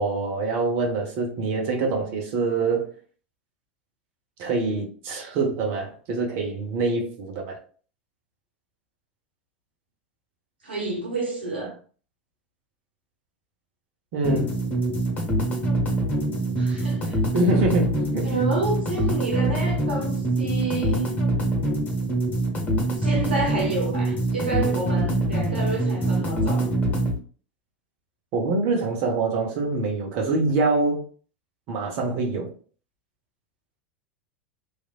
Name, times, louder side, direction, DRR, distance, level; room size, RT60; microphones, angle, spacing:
voice 1, 0.0-2.9 4.4-7.6 14.1-14.6 17.3-18.4 28.3-31.0 31.7-32.5, right 3 dB, 50° right, 0.9 m, -25 dB
voice 2, 10.6-11.7 16.6-17.2 18.2-21.1 23.0-26.7, right 3 dB, 85° right, 0.9 m, -29 dB
sound 1, 14.2-27.2, right 1 dB, 30° left, 1.1 m, -24 dB
3.1 x 2.5 x 2.4 m
figure-of-eight pair, 85°, 5 cm